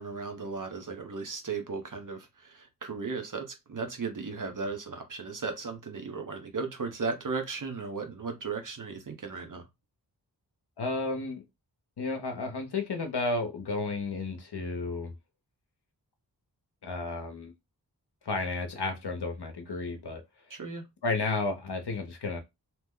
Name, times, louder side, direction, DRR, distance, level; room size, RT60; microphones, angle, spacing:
voice 1, 0.0-9.6 20.5-20.8, right 4 dB, 50° right, 0.8 m, -36 dB
voice 2, 10.8-11.4 12.0-15.1 16.8-17.5 18.2-20.2 21.0-22.4, left 3 dB, 70° left, 0.7 m, -32 dB
2.9 x 2.1 x 3.6 m
wide cardioid pair, 65°, 41 cm